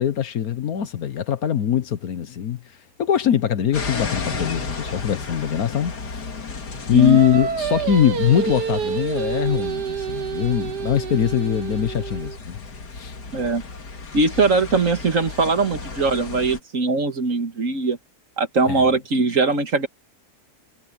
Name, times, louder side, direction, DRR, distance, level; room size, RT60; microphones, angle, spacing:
voice 1, 0.0-2.6 3.0-6.3 6.9-12.6 12.9-13.1 18.7-18.8, left 9 dB, 65° left, 1.4 m, -22 dB
sound 1, 3.7-16.6, left 4 dB, 80° left, 2.9 m, -34 dB
Singing, 7.0-12.4, right 7 dB, 85° right, 1.7 m, -28 dB
voice 2, 13.3-13.6 14.1-18.0 18.4-19.9, right 3 dB, 50° right, 2.1 m, -21 dB
omnidirectional pair, 1.7 m